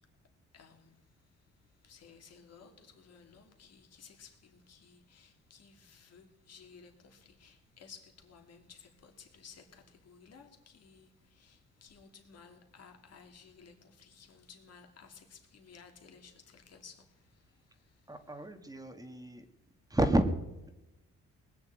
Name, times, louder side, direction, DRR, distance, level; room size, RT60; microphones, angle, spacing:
voice 1, 0.5-1.0 1.8-18.1, left 6 dB, 55° left, 3.0 m, -56 dB
voice 2, 18.1-19.5 19.9-20.3, right 1 dB, 10° right, 1.8 m, -30 dB
19.5 x 7.2 x 9.1 m
cardioid pair, 90°, 30 cm